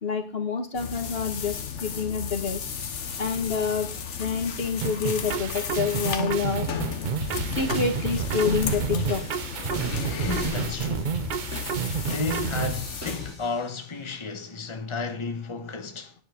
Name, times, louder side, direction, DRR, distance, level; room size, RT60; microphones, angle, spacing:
voice 1, 0.0-2.6 3.2-3.9 4.2-6.7 7.5-9.2, left 5 dB, 55° left, 1.5 m, -27 dB
sound 1, 0.7-13.4, left 6 dB, 75° left, 1.4 m, -34 dB
sound 2, 4.8-12.8, right 7 dB, 50° right, 0.7 m, -30 dB
sound 3, 7.2-13.7, right 1 dB, 80° right, 5.4 m, -37 dB
voice 2, 10.2-11.2 12.0-16.1, left 4 dB, 25° left, 1.2 m, -33 dB
9.4 x 9.0 x 5.0 m
omnidirectional pair, 1.2 m